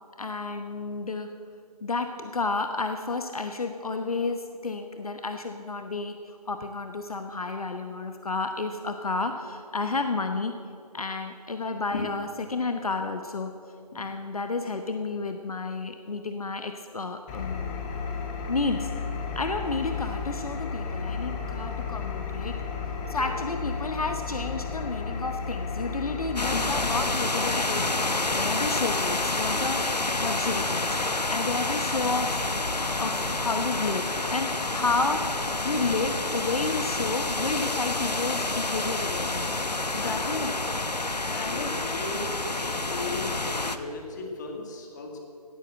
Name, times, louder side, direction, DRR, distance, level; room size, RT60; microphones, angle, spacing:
voice 1, 0.2-1.3 1.8-10.5 10.9-13.5 13.9-17.8 18.5-18.9 19.3-22.6 23.1-32.4 33.0-35.3 35.6-39.5 39.9-40.5 41.4-41.7, left 3 dB, 65° left, 7 dB, 1.0 m, -31 dB
Engine, 17.3-27.1, left 5 dB, 10° left, 0.9 m, -33 dB
sound 1, 26.4-43.8, left 2 dB, 90° left, 1.0 m, -28 dB
voice 2, 39.8-40.5 41.3-45.2, left 3 dB, 30° left, 3 dB, 2.0 m, -37 dB
16.5 x 9.5 x 7.6 m, 2.5 s
figure-of-eight pair, 150°, 20 cm